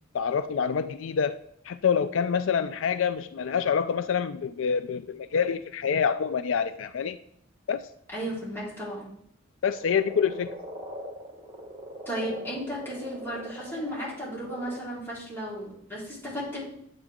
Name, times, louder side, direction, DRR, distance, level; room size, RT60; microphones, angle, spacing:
voice 1, 0.1-7.2 7.7-7.8 9.6-10.5, left 7 dB, 80° left, 0.4 m, -27 dB
voice 2, 8.1-9.1 12.1-16.6, equal, 10° left, 4.1 m, -34 dB
Frog, 9.8-14.8, right 1 dB, 25° right, 1.5 m, -41 dB
10.5 x 7.9 x 3.7 m
head